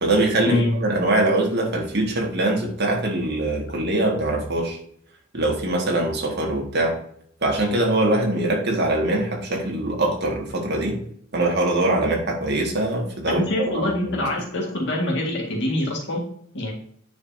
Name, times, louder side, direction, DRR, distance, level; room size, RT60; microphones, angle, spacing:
voice 1, 0.0-4.8 5.3-7.0 7.4-11.0 11.3-13.5 13.7-14.2, right 2 dB, 55° right, 1 dB, 1.9 m, -23 dB
voice 2, 13.3-16.2 16.5-16.7, left 1 dB, 60° left, -1 dB, 1.9 m, -24 dB
9.4 x 4.9 x 2.8 m, 0.65 s
head